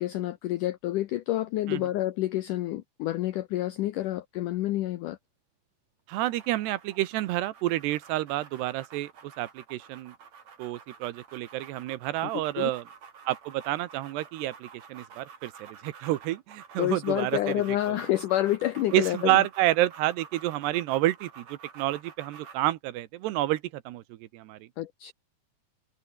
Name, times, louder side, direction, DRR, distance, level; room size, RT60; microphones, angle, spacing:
voice 1, 0.0-5.2 12.6-12.7 16.8-19.4 24.8-25.1, left 14 dB, 80° left, 1.8 m, -28 dB
voice 2, 6.1-10.1 10.6-12.8 13.3-18.0 18.9-24.0 24.3-24.7, right 15 dB, 80° right, 3.2 m, -29 dB
sound 1, 6.2-22.7, right 6 dB, 45° right, 3.9 m, -50 dB
omnidirectional pair, 4.8 m